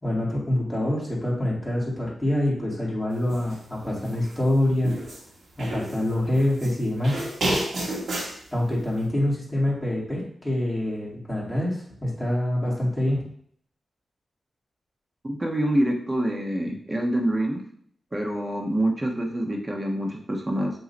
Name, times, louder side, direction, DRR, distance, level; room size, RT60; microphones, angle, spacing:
voice 1, 0.0-4.9 5.6-7.2 8.5-13.2, left 1 dB, 15° left, -6 dB, 2.4 m, -25 dB
sound 1, 3.3-3.6 4.0-5.2 5.6-6.7 7.0-8.4, right 1 dB, 75° right, 1.7 m, -30 dB
voice 2, 15.2-17.6 18.1-20.7, right 1 dB, 20° right, 1 dB, 1.3 m, -26 dB
7.7 x 3.1 x 4.1 m, 0.63 s
wide cardioid pair, 90°, 0 cm